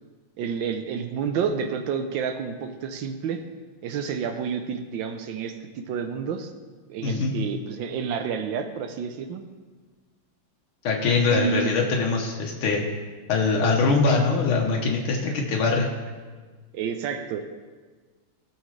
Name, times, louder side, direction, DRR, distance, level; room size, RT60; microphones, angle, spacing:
voice 1, 0.4-3.4 3.8-6.5 6.9-9.4 11.3-11.7 15.3-15.7 16.7-17.4, right 6 dB, 70° right, 7 dB, 1.3 m, -30 dB
voice 2, 10.8-12.8 13.3-15.9, left 4 dB, 80° left, -1 dB, 1.9 m, -22 dB
17.5 x 6.5 x 3.2 m, 1.4 s
omnidirectional pair, 2.3 m